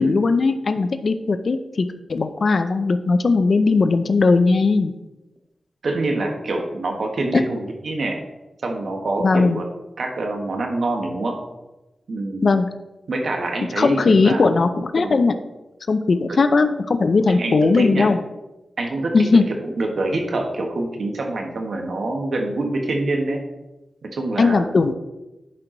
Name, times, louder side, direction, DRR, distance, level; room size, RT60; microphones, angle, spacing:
voice 1, 0.0-4.9 7.3-7.4 9.2-9.6 12.4-12.7 13.8-15.3 15.9-18.2 19.1-19.4 24.4-24.9, left 4 dB, 55° left, 9 dB, 0.5 m, -18 dB
voice 2, 5.8-8.2 8.6-9.6 10.0-11.4 12.1-12.5 13.1-14.5 15.0-15.2 16.3-16.4 17.3-18.1 18.8-19.1 19.6-23.4 24.0-24.7, right 2 dB, 65° right, 2 dB, 1.5 m, -25 dB
11.0 x 4.6 x 3.9 m, 1.0 s
wide cardioid pair, 115°, 0 cm